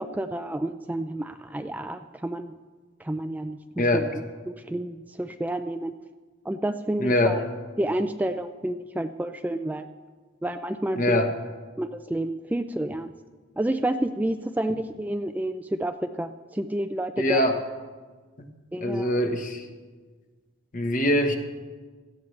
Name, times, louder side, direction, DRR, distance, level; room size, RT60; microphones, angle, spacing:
voice 1, 0.0-2.5 3.0-4.2 4.6-5.9 6.4-7.5 7.8-9.9 10.4-11.2 11.8-13.1 13.6-17.6 18.7-19.2, right 1 dB, 10° right, 7 dB, 0.3 m, -30 dB
voice 2, 7.0-7.4 10.9-11.3 17.2-17.6 18.4-18.5 18.8-19.7 20.7-21.4, left 1 dB, 45° left, 5 dB, 1.2 m, -23 dB
17.0 x 14.0 x 3.2 m, 1.4 s
head